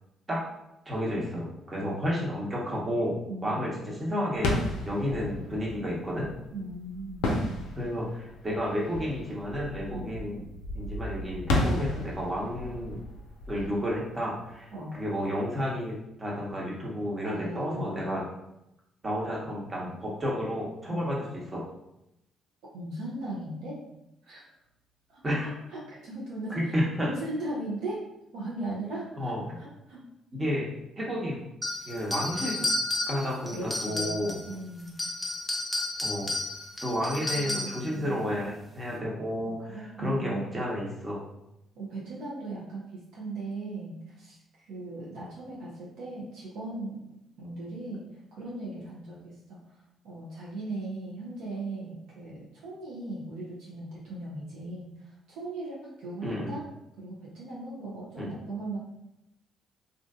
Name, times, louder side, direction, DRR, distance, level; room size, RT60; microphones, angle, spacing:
voice 1, 0.9-3.2 3.4-4.5 4.8-6.3 7.7-10.4 10.7-13.0 13.5-14.7 14.9-18.2 19.0-21.2 21.5-21.6 25.2-25.5 26.5-27.1 29.2-29.4 30.3-30.7 31.0-31.4 31.9-32.7 33.1-34.4 36.0-36.3 36.8-41.2 56.2-56.5 58.2-58.3, equal, 30° right, -4 dB, 1.0 m, -31 dB
voice 2, 3.3-3.7 6.5-7.3 9.9-10.2 14.7-15.0 17.2-18.3 20.9-21.1 22.7-23.8 24.2-24.4 25.1-25.2 25.7-28.0 28.3-30.0 33.5-34.9 37.3-38.3 39.5-40.6 41.8-47.0 47.4-49.6 50.0-56.6 57.0-58.8, right 2 dB, 70° right, -6 dB, 0.6 m, -38 dB
sound 1, 4.3-14.9, left 1 dB, 75° left, 0.4 m, -33 dB
sound 2, 31.6-34.5 34.9-37.9, left 2 dB, 5° left, 0.7 m, -32 dB
2.5 x 2.4 x 2.3 m, 0.85 s
hypercardioid pair, 50°, 0 cm